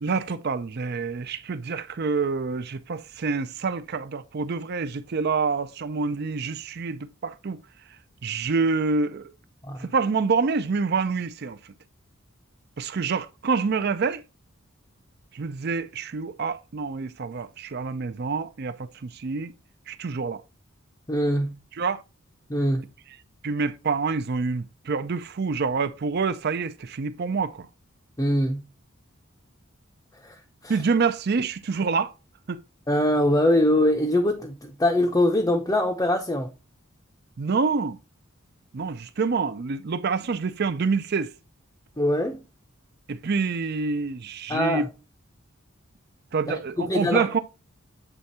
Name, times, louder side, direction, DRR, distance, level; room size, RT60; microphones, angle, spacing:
voice 1, 0.0-7.6 8.2-9.3 9.8-11.6 12.8-14.2 15.3-19.5 19.9-20.4 21.7-22.0 23.4-27.7 30.7-32.1 32.5-32.6 37.4-38.0 38.7-41.3 43.1-44.9 46.3-47.4, right 4 dB, 50° right, 0.5 m, -27 dB
voice 2, 21.1-21.5 22.5-22.9 28.2-28.6 30.2-30.4 32.9-36.5 42.0-42.4 44.5-44.8 46.5-47.4, left 1 dB, 15° left, 0.6 m, -23 dB
8.0 x 3.5 x 4.1 m
head